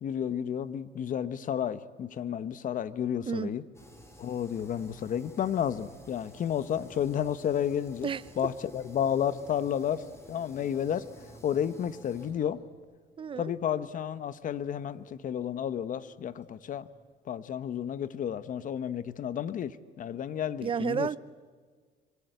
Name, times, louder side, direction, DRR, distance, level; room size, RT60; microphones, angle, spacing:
voice 1, 0.0-3.6 4.2-8.1 8.4-11.1 11.4-12.6 13.4-16.9 17.3-21.1, left 9 dB, 50° left, 1.2 m, -31 dB
sound 1, 3.7-17.1, equal, 15° left, 5.3 m, -54 dB
voice 2, 13.2-13.5 20.6-21.2, right 7 dB, 30° right, 0.7 m, -31 dB
25.0 x 24.5 x 8.2 m
cardioid pair, 110°, 17 cm